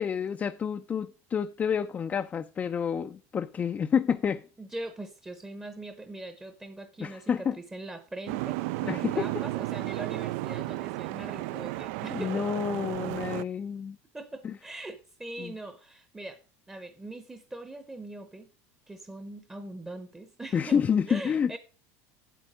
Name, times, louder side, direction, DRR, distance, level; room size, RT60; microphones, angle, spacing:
voice 1, 0.0-4.4 7.0-7.6 8.9-9.4 12.1-14.0 14.4-14.6 15.4-15.5 20.5-21.6, left 7 dB, 20° left, 0.4 m, -29 dB
voice 2, 4.6-12.4 14.1-16.4 16.7-18.5 18.9-20.8 21.1-21.6, right 2 dB, 10° right, 0.8 m, -41 dB
Boat Water vehicle, 8.3-13.4, right 19 dB, 75° right, 0.3 m, -33 dB
8.3 x 7.7 x 4.9 m
supercardioid pair, 135°, 7 cm